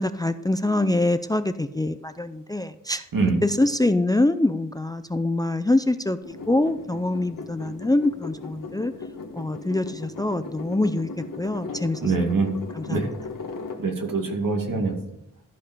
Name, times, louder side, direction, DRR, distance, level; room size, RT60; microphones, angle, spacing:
voice 1, 0.0-3.0 3.4-8.9 9.3-12.1 12.8-13.1, left 2 dB, 10° left, 11 dB, 0.4 m, -24 dB
sound 1, 6.2-13.8, left 4 dB, 70° left, 1.5 m, -37 dB
voice 2, 12.0-12.5 12.9-13.1 13.8-14.9, right 4 dB, 75° right, 2 dB, 2.3 m, -24 dB
13.5 x 5.3 x 5.4 m, 0.81 s
wide cardioid pair, 130°, 33 cm